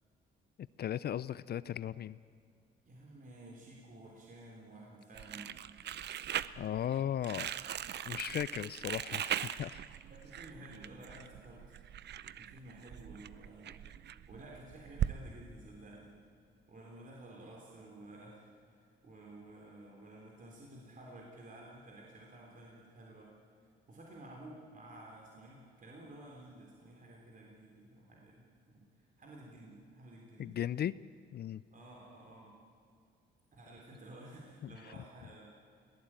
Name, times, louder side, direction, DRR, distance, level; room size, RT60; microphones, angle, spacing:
voice 1, 0.8-2.2 6.6-7.5 8.1-9.8 30.4-30.9 31.3-31.6 34.6-34.7, left 10 dB, 55° left, 18 dB, 0.5 m, -36 dB
voice 2, 2.9-5.5 10.1-11.7 12.3-16.1 16.7-23.3 23.9-30.5 31.7-32.5 33.5-35.5, right 1 dB, 45° right, -2 dB, 3.8 m, -53 dB
Crumpling crinkling, 5.1-15.1, right 10 dB, 60° right, 0.7 m, -40 dB
21.5 x 17.0 x 9.0 m, 2.4 s
cardioid pair, 90°, 20 cm